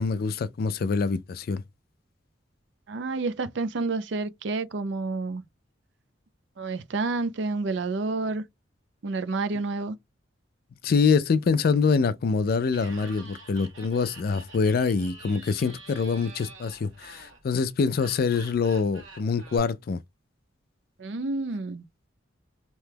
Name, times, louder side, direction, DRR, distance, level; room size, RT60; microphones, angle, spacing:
voice 1, 0.0-1.6 10.8-20.0, left 5 dB, 55° left, 0.4 m, -25 dB
voice 2, 2.9-5.4 6.6-8.4 9.0-10.0 21.0-21.8, right 3 dB, 65° right, 0.5 m, -29 dB
Laughter, 12.6-19.6, right 3 dB, 90° right, 1.3 m, -47 dB
2.9 x 2.2 x 3.3 m
head